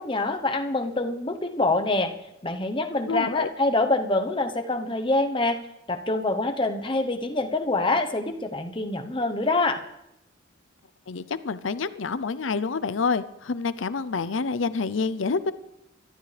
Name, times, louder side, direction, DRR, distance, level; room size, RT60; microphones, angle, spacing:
voice 1, 0.0-2.1 2.4-5.6 5.9-9.8, left 2 dB, 25° left, 5 dB, 1.0 m, -25 dB
voice 2, 3.0-3.5 11.1-15.5, left 4 dB, 85° left, 15 dB, 0.6 m, -27 dB
24.5 x 12.0 x 3.4 m, 0.87 s
head